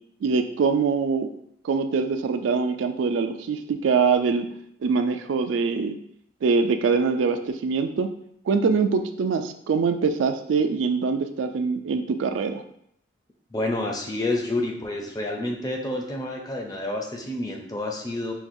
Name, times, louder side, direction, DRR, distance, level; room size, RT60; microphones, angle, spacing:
voice 1, 0.2-1.3 1.6-4.5 4.8-6.0 6.4-8.1 8.5-12.6, right 5 dB, 75° right, 8 dB, 0.3 m, -23 dB
voice 2, 13.5-18.3, left 2 dB, 20° left, 1 dB, 0.5 m, -29 dB
5.8 x 2.3 x 2.6 m, 0.71 s
head